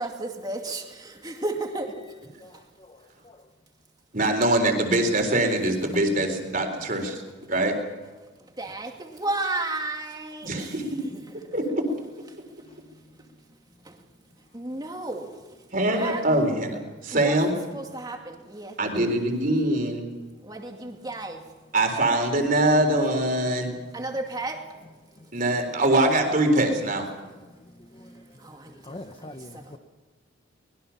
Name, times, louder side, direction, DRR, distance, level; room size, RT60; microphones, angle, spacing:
voice 1, 0.0-1.9 2.4-2.6 8.4-11.5 13.8-14.0 14.5-15.3 15.9-16.2 17.1-18.8 20.4-21.4 23.9-24.7 28.4-29.8, right 2 dB, 20° right, 2 dB, 2.4 m, -34 dB
voice 2, 2.4-3.4 12.7-12.8 25.2-25.4 27.3-29.8, left 1 dB, 25° left, 7 dB, 0.9 m, -46 dB
voice 3, 4.1-7.2 7.5-7.7 10.4-10.8 11.5-11.7 15.7-17.5 18.8-20.1 21.7-23.7 25.3-27.1, right 1 dB, 45° right, 4 dB, 3.9 m, -23 dB
24.5 x 21.0 x 5.8 m, 1.3 s
head